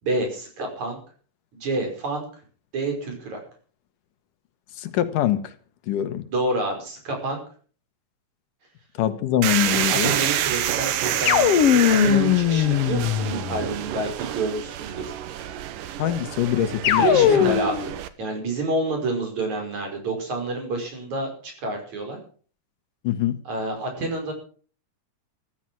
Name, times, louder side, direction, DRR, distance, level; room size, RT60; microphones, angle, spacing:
voice 1, 0.0-1.0 1.5-2.2 2.7-3.4 6.3-7.4 9.9-15.1 17.0-17.9 18.2-22.2 23.5-24.3, right 2 dB, 60° right, 6.6 m, -28 dB
voice 2, 4.8-5.5 5.9-6.2 9.0-10.1 16.0-17.6 23.0-23.4, left 11 dB, 80° left, 2.7 m, -24 dB
sound 1, 9.4-18.1, right 11 dB, 85° right, 2.7 m, -28 dB
sound 2, 11.3-13.7 16.8-17.9, left 9 dB, 60° left, 1.8 m, -19 dB
14.5 x 13.5 x 6.1 m
omnidirectional pair, 3.7 m